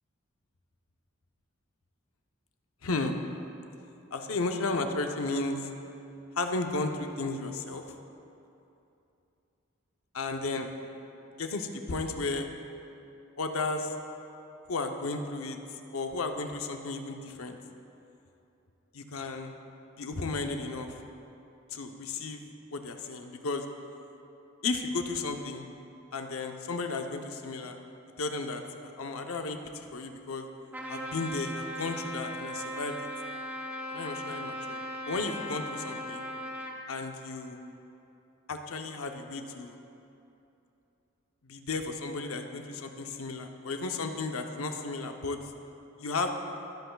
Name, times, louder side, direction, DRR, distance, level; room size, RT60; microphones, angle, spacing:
voice 1, 2.8-3.2 4.1-5.7 6.4-7.8 10.1-10.7 11.4-12.5 13.4-13.9 14.7-15.6 15.9-17.6 18.9-19.5 20.0-21.0 21.7-22.4 22.7-23.6 24.6-25.7 26.1-27.8 28.2-30.5 30.9-33.1 33.9-36.3 36.9-37.6 38.5-39.8 41.5-45.4 46.0-46.3, left 3 dB, 90° left, 5 dB, 0.7 m, -34 dB
Trumpet, 30.7-36.8, equal, 10° right, 0.7 m, -38 dB
19.5 x 7.9 x 2.3 m, 2.8 s
head